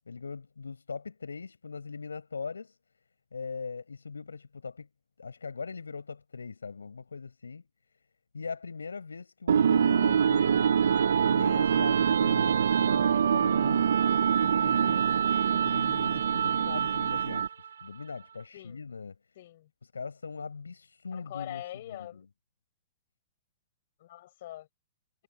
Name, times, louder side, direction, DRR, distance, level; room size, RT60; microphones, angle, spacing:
voice 1, 0.0-2.8 3.3-4.9 5.2-7.7 8.3-10.8 11.2-14.0 14.4-17.4 17.8-19.1 19.9-21.6 21.9-22.3, left 5 dB, 85° left, 7.2 m, -40 dB
sound 1, 9.5-17.7, right 7 dB, 75° right, 1.2 m, -24 dB
voice 2, 19.4-19.7 21.1-22.3 24.0-24.7, left 14 dB, 60° left, 7.6 m, -43 dB
hypercardioid pair, 105°, 0 cm